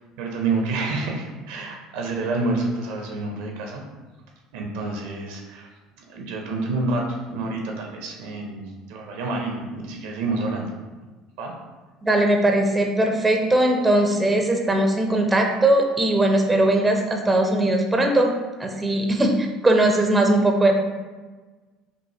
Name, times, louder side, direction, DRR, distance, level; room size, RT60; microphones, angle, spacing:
voice 1, 0.2-3.8 4.5-5.7 6.1-10.7 11.4-11.5, right 3 dB, 60° right, 1 dB, 0.6 m, -28 dB
voice 2, 12.0-18.3 18.6-20.7, right 1 dB, 15° right, 2 dB, 0.6 m, -19 dB
5.5 x 2.8 x 2.7 m, 1.3 s
figure-of-eight pair, 65°, 0 cm